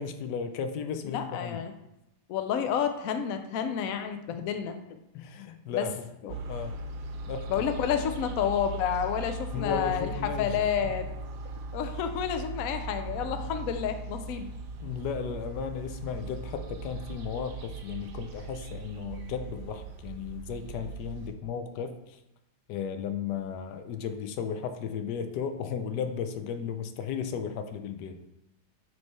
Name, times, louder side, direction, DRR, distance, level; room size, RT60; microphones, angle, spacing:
voice 1, 0.0-1.6 4.3-4.4 5.1-5.9 6.5-6.8 7.3-7.5 9.5-10.7 14.8-22.2 22.7-28.2, left 7 dB, 85° left, 7 dB, 1.2 m, -35 dB
voice 2, 1.0-1.7 2.3-4.8 5.7-5.9 6.2-6.3 7.5-11.1 11.7-14.5, left 8 dB, 70° left, 7 dB, 0.9 m, -30 dB
sound 1, 6.3-21.3, right 2 dB, 80° right, 1.3 m, -39 dB
8.8 x 3.2 x 4.2 m, 0.88 s
omnidirectional pair, 1.8 m